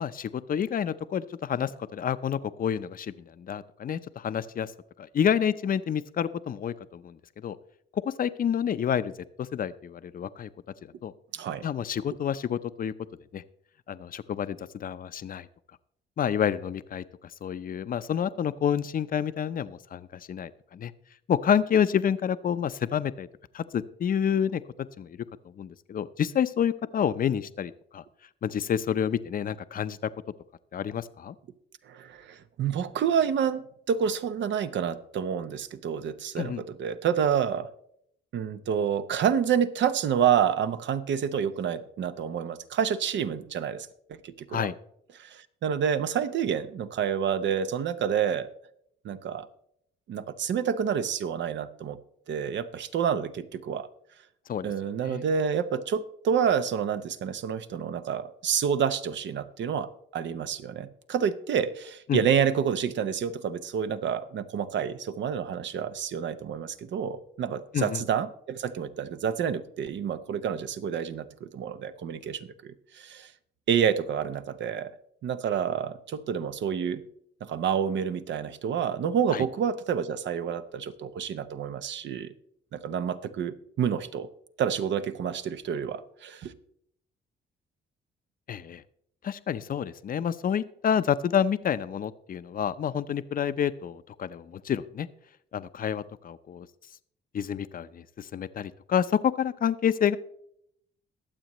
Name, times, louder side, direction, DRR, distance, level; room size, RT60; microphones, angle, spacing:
voice 1, 0.0-4.7 5.0-7.6 7.9-9.1 9.4-10.5 10.8-11.1 11.6-12.9 13.3-13.4 13.9-15.5 16.2-17.0 17.4-20.9 21.3-23.3 23.5-25.2 25.4-28.0 28.4-30.1 30.7-31.4 36.4-36.6 44.5-44.7 54.5-54.7 55.0-55.3 62.1-62.2 67.7-68.0 79.3-79.4 88.5-88.8 89.2-95.1 95.5-96.7 97.3-100.2, left 8 dB, 45° left, 13 dB, 0.6 m, -29 dB
voice 2, 11.3-11.6 31.9-37.7 38.3-44.7 45.2-48.5 49.0-49.5 50.1-52.0 52.3-53.9 54.6-73.3 73.7-74.9 75.2-77.0 77.4-82.3 82.7-84.3 84.6-86.5, right 8 dB, 65° right, 11 dB, 0.8 m, -28 dB
22.0 x 7.5 x 3.1 m, 0.71 s
cardioid pair, 90°, 20 cm